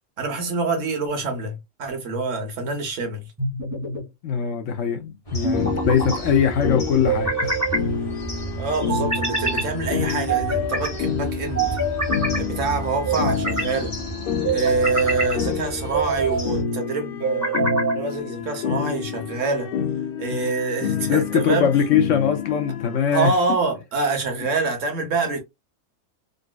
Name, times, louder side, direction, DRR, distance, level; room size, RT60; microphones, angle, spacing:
voice 1, 0.2-3.3 8.6-11.8 12.4-14.0 14.5-17.7 17.9-19.7 20.2-21.7 23.1-25.4, right 3 dB, 60° right, 1.2 m, -26 dB
sound 1, 3.4-4.0 5.4-6.2 7.0-7.8 8.9-9.7 10.3-10.9 11.5-12.4 13.0-13.7 14.4-15.4 15.9-16.4 17.2-18.0, right 3 dB, 15° right, 1.0 m, -25 dB
voice 2, 4.2-7.6 20.3-20.4 21.1-23.3, left 7 dB, 65° left, 0.9 m, -22 dB
sound 2, 5.3-16.6, right 3 dB, 25° left, 1.2 m, -33 dB
sound 3, 5.5-23.0, left 7 dB, 85° left, 0.5 m, -29 dB
3.9 x 2.4 x 2.2 m
omnidirectional pair, 1.5 m